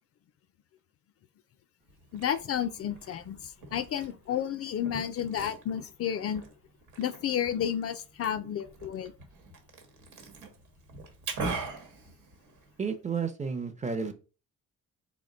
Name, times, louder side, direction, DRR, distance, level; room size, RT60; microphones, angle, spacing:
Liquid, 1.9-12.9, right 3 dB, 80° right, 1.1 m, -42 dB
voice 1, 2.1-6.4 7.0-9.1, left 9 dB, 50° left, 0.4 m, -31 dB
voice 2, 12.8-14.1, right 5 dB, 25° right, 0.6 m, -32 dB
3.8 x 2.1 x 3.8 m
cardioid pair, 90°, 30 cm